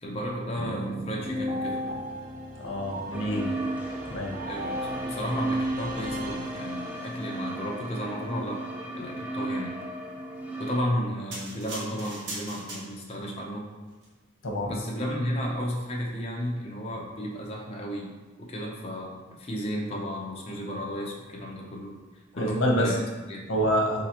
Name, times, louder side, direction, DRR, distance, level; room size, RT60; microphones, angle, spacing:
voice 1, 0.0-1.9 4.5-4.8 5.0-8.6 8.9-9.7 10.6-13.6 14.6-22.0 22.3-23.6, equal, 30° left, -2 dB, 0.7 m, -33 dB
sound 1, 0.6-7.3, equal, 45° right, 0.6 m, -36 dB
voice 2, 2.6-3.5 4.1-4.3 14.4-14.7 22.3-22.9 23.5-24.0, equal, 85° left, 0 dB, 0.8 m, -26 dB
sound 2, 3.1-10.8, right 2 dB, 10° right, 0.4 m, -35 dB
sound 3, 11.3-13.3 13.9-14.1, right 2 dB, 60° right, 1.0 m, -39 dB
4.1 x 3.8 x 2.9 m, 1.2 s
head